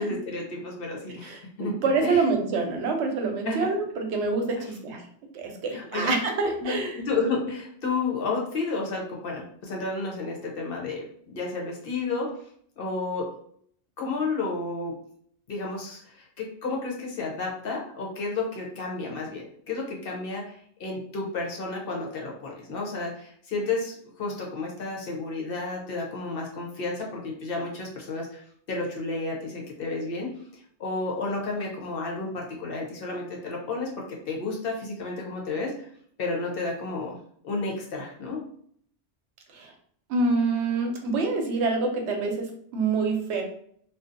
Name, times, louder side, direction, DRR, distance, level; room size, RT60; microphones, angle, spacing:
voice 1, 0.0-1.7 2.0-2.2 3.4-3.7 4.6-4.7 5.7-6.1 6.6-12.3 12.8-13.3 14.0-14.9 15.5-28.4 28.7-30.3 30.8-35.9 36.2-37.2 37.4-38.4, left 3 dB, 60° left, -1 dB, 0.8 m, -31 dB
voice 2, 1.2-5.0 5.3-6.9 39.5-39.7 40.1-43.4, right 3 dB, 90° right, 3 dB, 0.9 m, -26 dB
2.5 x 2.2 x 2.5 m, 0.63 s
omnidirectional pair, 1.1 m